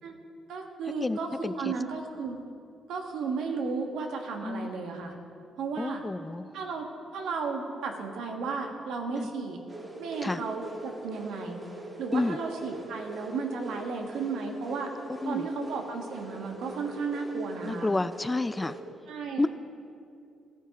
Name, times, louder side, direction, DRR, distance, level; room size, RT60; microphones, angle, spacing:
voice 1, 0.5-2.4 2.9-5.1 5.6-6.0 6.5-6.9 7.1-9.6 10.0-11.6 12.0-14.9 15.2-17.9 19.1-19.5, right 4 dB, 80° right, 2 dB, 1.4 m, -34 dB
voice 2, 1.0-1.7 4.4-4.7 5.8-6.6 9.2-9.3 10.2-10.4 12.1-12.4 15.1-15.5 17.6-18.8 19.4-19.5, left 2 dB, 15° left, 14 dB, 0.3 m, -30 dB
sound 1, 9.7-18.8, right 2 dB, 25° right, 1.8 m, -43 dB
14.0 x 10.0 x 4.1 m, 2.5 s
cardioid pair, 90°, 0 cm